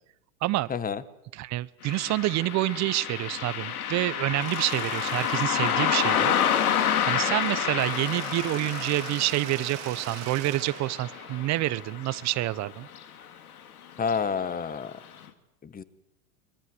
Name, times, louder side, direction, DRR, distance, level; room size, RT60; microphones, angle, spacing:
voice 1, 0.7-1.0 14.0-14.9 15.6-15.8, left 6 dB, 20° left, 15 dB, 1.5 m, -29 dB
voice 2, 1.3-6.3 7.0-12.9, right 17 dB, 40° right, 18 dB, 1.0 m, -28 dB
Car passing by, 1.8-12.7 12.9-13.0 14.0-14.2 14.6-14.7 15.2-15.3, left 9 dB, 90° left, 2.5 m, -29 dB
Mechanisms, 4.4-7.0 7.3-12.2, right 14 dB, 70° right, 2.6 m, -43 dB
24.0 x 22.0 x 8.0 m, 0.85 s
hypercardioid pair, 115°, 43 cm